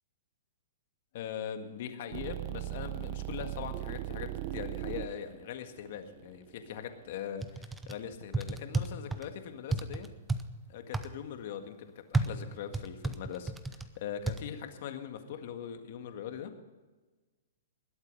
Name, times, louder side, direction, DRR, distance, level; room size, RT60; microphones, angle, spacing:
voice 1, 1.1-10.1 10.7-16.5, left 8 dB, 55° left, 7 dB, 1.8 m, -41 dB
sound 1, 2.1-7.2, right 15 dB, 40° right, 0.9 m, -39 dB
sound 2, 7.4-8.0 8.3-9.3 9.7-10.4 10.9-11.1 12.1-13.9 14.3-14.4, right 3 dB, 10° right, 0.8 m, -31 dB
20.5 x 8.2 x 5.4 m, 1.3 s
hypercardioid pair, 140°, 0 cm